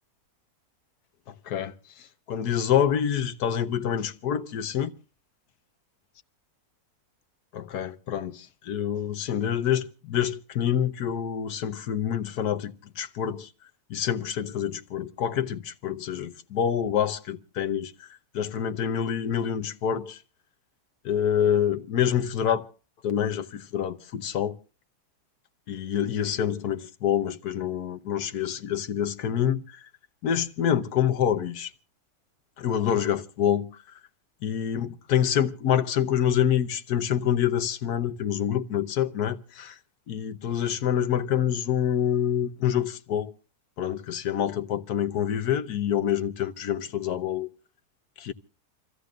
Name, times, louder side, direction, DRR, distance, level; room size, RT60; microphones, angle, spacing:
voice 1, 1.3-4.9 7.5-13.5 13.9-18.1 18.3-20.2 21.0-22.7 23.0-24.6 25.7-29.9 30.2-31.7 32.6-33.8 34.4-39.8 40.1-43.3 43.8-47.5 48.2-48.3, left 9 dB, 85° left, 1.5 m, -27 dB
28.5 x 15.0 x 2.5 m
omnidirectional pair, 1.6 m